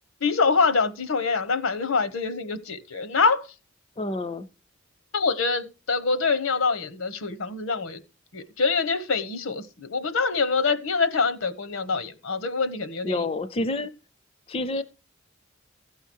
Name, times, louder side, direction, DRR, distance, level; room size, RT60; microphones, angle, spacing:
voice 1, 0.2-3.5 5.1-8.0 8.3-13.3, left 4 dB, 80° left, 1.0 m, -25 dB
voice 2, 4.0-4.5 13.0-13.9 14.5-14.8, left 2 dB, 30° left, 0.5 m, -28 dB
15.0 x 5.7 x 4.6 m
head